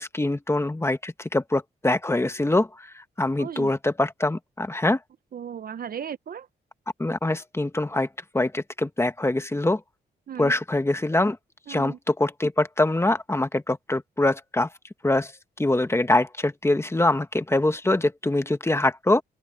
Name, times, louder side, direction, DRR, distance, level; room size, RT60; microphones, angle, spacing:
voice 1, 0.0-5.0 7.0-8.1 8.3-9.8 10.4-11.4 11.7-14.7 15.0-15.3 15.6-19.2, left 2 dB, 15° left, 1.4 m, -24 dB
voice 2, 3.4-3.7 5.3-6.5 10.3-10.5 11.7-12.0, right 8 dB, 55° right, 0.8 m, -36 dB
open air
cardioid pair, 85°, 18 cm